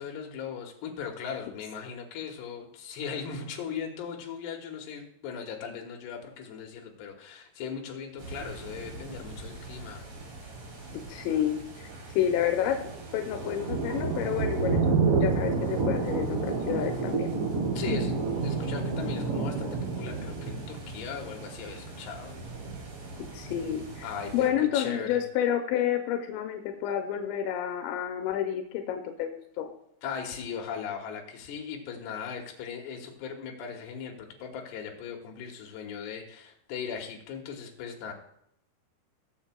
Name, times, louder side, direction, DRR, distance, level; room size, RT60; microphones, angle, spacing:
voice 1, 0.0-10.0 17.7-18.2 18.4-22.3 24.0-24.5 24.7-25.2 30.0-38.1, left 7 dB, 75° left, 1 dB, 3.3 m, -38 dB
sound 1, 8.2-24.5, right 4 dB, 45° right, 3.0 m, -31 dB
voice 2, 11.1-12.8 13.1-17.3 23.3-24.1 24.3-29.3 29.6-29.7, left 10 dB, 90° left, 5 dB, 3.0 m, -29 dB
19.0 x 7.3 x 2.3 m, 0.75 s
omnidirectional pair, 5.1 m